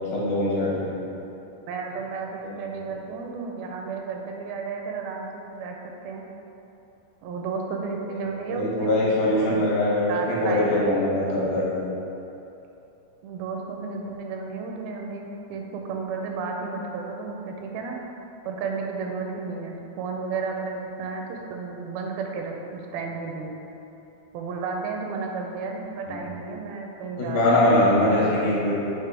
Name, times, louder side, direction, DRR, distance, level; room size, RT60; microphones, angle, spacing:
voice 1, 0.1-1.0 8.5-11.9 26.1-26.2 27.2-28.7, left 1 dB, 75° left, -6 dB, 3.0 m, -22 dB
voice 2, 1.7-6.2 7.2-9.6 10.1-11.0 13.2-18.0 18.5-23.6 24.3-27.7 28.0-28.5, right 4 dB, 85° right, 1 dB, 2.4 m, -33 dB
7.5 x 3.1 x 4.7 m, 2.9 s
omnidirectional pair, 4.2 m